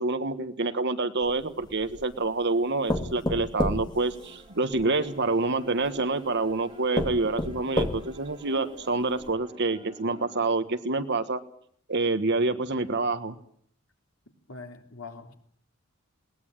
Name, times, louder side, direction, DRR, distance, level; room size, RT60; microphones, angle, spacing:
voice 1, 0.0-11.4 11.9-13.4, right 3 dB, 55° right, 9 dB, 1.5 m, -27 dB
sound 1, 1.2-2.1 2.9-4.9 5.8-5.9 6.5-6.6 7.0-8.3 8.8-8.9 9.2-9.3, left 1 dB, 20° left, 2.4 m, -30 dB
sound 2, 4.0-10.6, right 1 dB, 25° right, 4.8 m, -48 dB
voice 2, 14.5-15.3, left 4 dB, 80° left, 4 dB, 3.1 m, -42 dB
20.5 x 19.0 x 9.1 m, 0.65 s
head